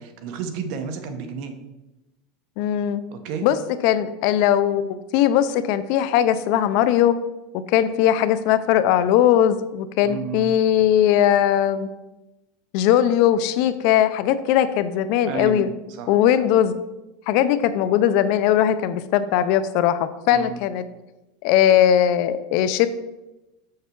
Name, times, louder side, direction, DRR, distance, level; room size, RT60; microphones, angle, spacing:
voice 1, 0.0-1.5 3.1-3.5 10.0-10.6 15.2-15.7 16.0-16.1 20.3-20.6, right 6 dB, 55° right, 7 dB, 1.0 m, -31 dB
voice 2, 2.6-3.0 3.4-3.6 3.8-7.1 7.7-11.9 12.7-15.7 16.1-16.7 17.3-20.8 21.4-22.9, left 10 dB, 55° left, 13 dB, 0.5 m, -19 dB
6.8 x 6.5 x 4.5 m, 1.0 s
supercardioid pair, 155°, 0 cm